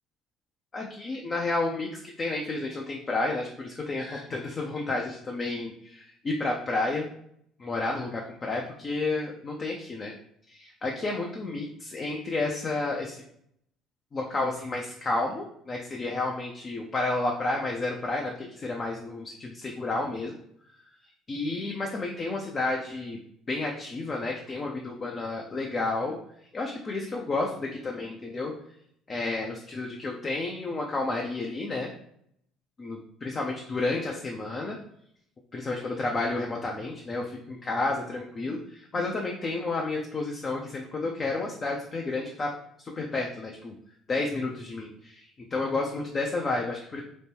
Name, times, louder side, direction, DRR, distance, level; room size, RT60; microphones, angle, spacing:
voice 1, 0.7-7.1 7.6-10.1 10.5-13.2 14.1-20.4 21.3-23.2 23.5-26.2 26.5-28.5 29.1-31.9 32.8-34.8 35.5-43.7 44.1-47.0, left 2 dB, 35° left, -1 dB, 0.5 m, -31 dB
3.0 x 2.1 x 3.3 m, 0.71 s
hypercardioid pair, 55°, 0 cm